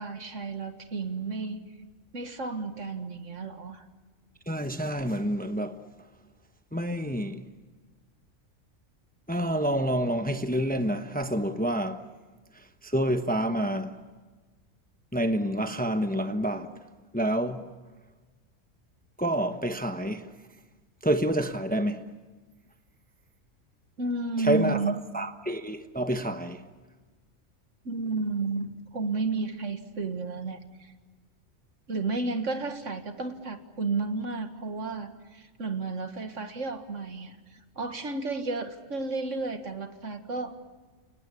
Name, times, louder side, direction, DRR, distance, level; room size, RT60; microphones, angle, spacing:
voice 1, 0.0-1.6 2.1-3.9 24.0-25.0 27.8-30.9 31.9-40.5, right 3 dB, 70° right, 2.1 m, -32 dB
voice 2, 4.5-5.8 6.7-7.4 9.3-12.0 12.8-14.0 15.1-16.7 17.1-17.6 19.2-20.3 21.0-22.0 24.4-24.8 25.1-26.6, right 1 dB, 10° left, 0.9 m, -28 dB
30.0 x 18.5 x 9.8 m
omnidirectional pair, 1.3 m